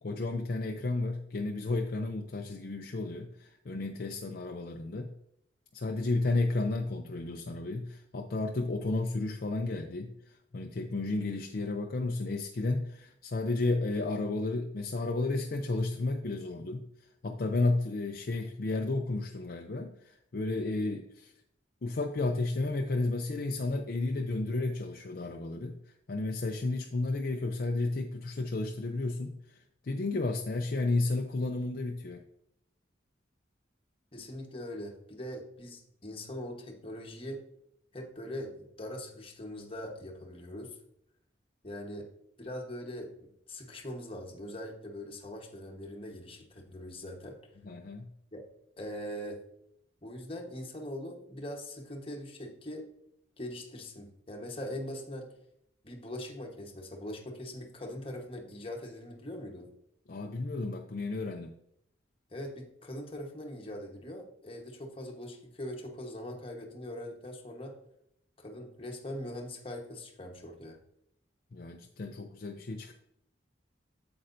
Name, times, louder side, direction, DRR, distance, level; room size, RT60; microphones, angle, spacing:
voice 1, 0.0-5.1 5.7-21.3 21.8-32.2 47.6-48.1 60.1-61.6 71.5-72.9, left 2 dB, 50° left, 3 dB, 0.5 m, -32 dB
voice 2, 34.1-37.4 37.9-40.8 41.6-42.1 42.4-47.4 48.3-48.4 48.8-49.4 50.0-52.9 53.4-55.3 55.8-59.7 62.3-67.7 68.4-70.8, left 1 dB, 30° left, 1 dB, 1.2 m, -41 dB
8.5 x 7.7 x 2.6 m, 0.76 s
head